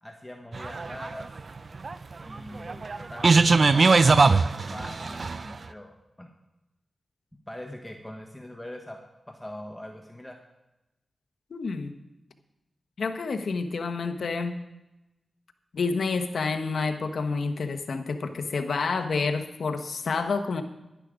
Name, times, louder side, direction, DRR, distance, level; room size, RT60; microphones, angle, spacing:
voice 1, 0.0-1.3 2.2-4.2 4.7-6.3 7.5-9.0 9.3-10.4, left 1 dB, 10° left, 2 dB, 1.3 m, -42 dB
sound 1, 0.5-5.6, right 4 dB, 55° right, 0.5 m, -21 dB
voice 2, 11.5-11.9 13.0-14.5 15.7-20.6, left 4 dB, 80° left, 6 dB, 1.1 m, -29 dB
11.0 x 10.5 x 5.0 m, 0.95 s
cardioid pair, 70°, 0 cm